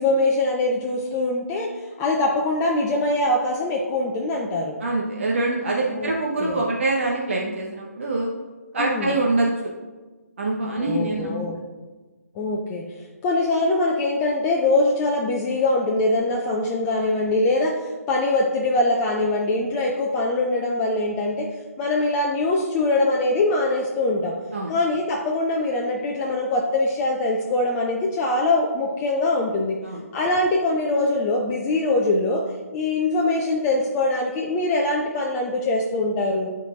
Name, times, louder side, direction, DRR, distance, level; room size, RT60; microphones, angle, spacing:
voice 1, 0.0-4.8 6.0-6.1 6.4-6.6 8.8-9.1 10.8-11.6 12.4-12.8 13.2-21.5 21.8-24.3 24.7-29.8 30.1-32.4 32.7-36.5, left 2 dB, 15° left, -1 dB, 0.4 m, -23 dB
voice 2, 4.8-8.3 8.7-9.7 10.4-11.4 24.5-24.7 29.8-30.0, right 2 dB, 50° right, -2 dB, 0.9 m, -24 dB
12.0 x 4.0 x 2.4 m, 1.3 s
figure-of-eight pair, 140°, 9 cm